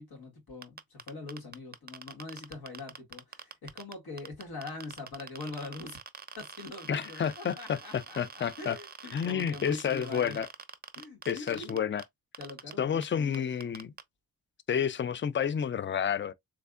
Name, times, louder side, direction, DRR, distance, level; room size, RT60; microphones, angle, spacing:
voice 1, 0.0-6.0 6.4-10.4 10.9-11.8 12.4-13.7, left 3 dB, 65° left, 2.3 m, -43 dB
sound 1, 0.6-12.0 12.3-12.7 13.0-13.1 13.3-14.0, right 6 dB, 25° right, 0.6 m, -45 dB
voice 2, 6.9-8.8 9.1-10.5 11.3-12.0 12.8-13.9 14.7-16.3, left 8 dB, 30° left, 0.5 m, -30 dB
3.5 x 3.3 x 2.4 m
cardioid pair, 85°, 39 cm